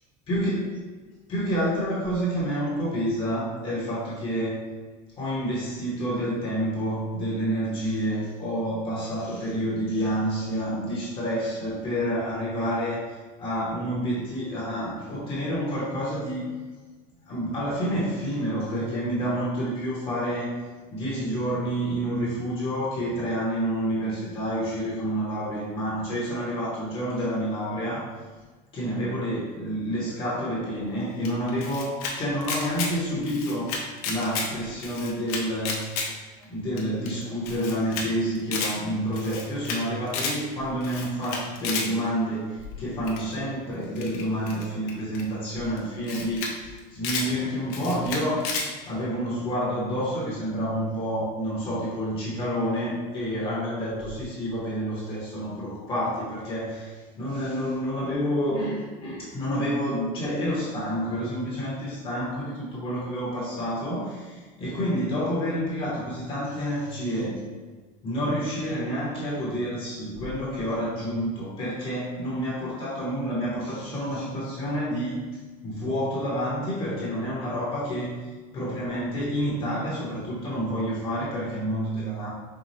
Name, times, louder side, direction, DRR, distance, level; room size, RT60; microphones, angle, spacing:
voice 1, 0.3-0.8 1.3-4.6 5.2-16.5 17.2-20.6 20.9-28.1 28.7-35.8 36.4-48.5 48.9-67.4 68.0-75.2 75.6-82.3, equal, 30° left, -7 dB, 1.1 m, -29 dB
Camera, 31.2-32.1 32.4-32.9 33.2-34.5 34.8-36.1 36.4-36.5 36.8-36.9 37.1-37.2 37.5-38.0 38.3-38.7 39.1-39.8 40.1-40.4 40.8-41.9 43.1-43.3 44.0-45.2 45.8-45.9 46.0-46.5 46.8-47.3 47.7-48.7, left 4 dB, 75° left, 0.8 m, -31 dB
4.7 x 2.3 x 2.8 m, 1.4 s
cardioid pair, 155°, 19 cm